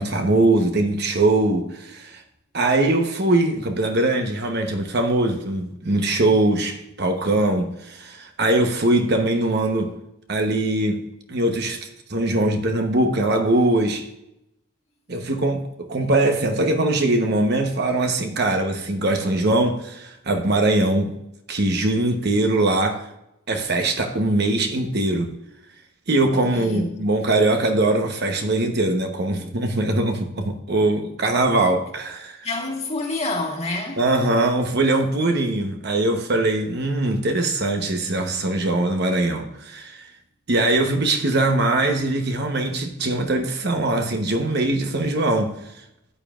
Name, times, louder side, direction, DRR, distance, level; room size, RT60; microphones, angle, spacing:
voice 1, 0.0-2.2 2.5-9.9 10.3-11.0 11.3-14.0 15.1-21.1 21.5-23.1 23.5-25.3 26.1-32.5 34.0-40.1 40.5-45.6, right 2 dB, 50° right, 1.0 m, -21 dB
voice 2, 26.3-27.0 32.4-34.0, left 2 dB, 30° left, 1.7 m, -28 dB
14.0 x 9.1 x 2.5 m
head